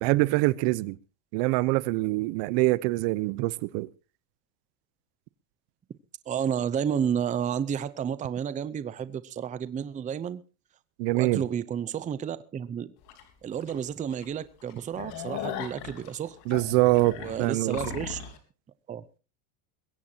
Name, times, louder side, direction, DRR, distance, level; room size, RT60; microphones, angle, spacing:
voice 1, 0.0-1.0 1.3-3.9 11.0-11.4 16.5-17.8, right 21 dB, 55° right, 0.8 m, -24 dB
voice 2, 6.3-10.4 11.1-12.9 13.4-16.4 17.2-18.2 18.9-19.0, right 8 dB, 15° right, 0.6 m, -31 dB
sound 1, 13.1-13.2 13.7-13.8 14.1-14.2 14.6-18.4, left 9 dB, 60° left, 3.8 m, -38 dB
21.5 x 16.5 x 2.8 m
supercardioid pair, 140°, 45 cm